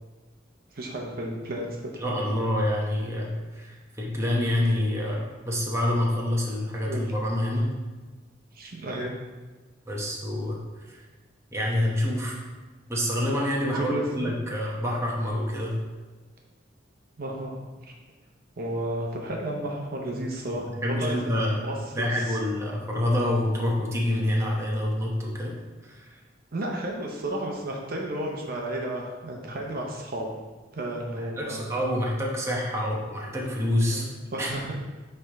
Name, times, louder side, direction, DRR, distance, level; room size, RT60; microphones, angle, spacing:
voice 1, 0.7-1.9 6.8-7.1 8.5-9.1 13.7-14.4 17.2-17.6 18.6-21.2 21.5-22.4 26.5-30.3 30.7-31.6 33.9-34.8, right 1 dB, 50° right, 0 dB, 0.8 m, -32 dB
voice 2, 2.0-7.7 9.9-10.6 10.9-11.0 11.5-12.4 12.9-15.8 20.8-21.7 21.9-25.6 25.8-26.2 31.2-34.0 34.4-34.5, left 1 dB, 15° right, -3 dB, 1.0 m, -27 dB
9.3 x 3.3 x 3.4 m, 1.3 s
head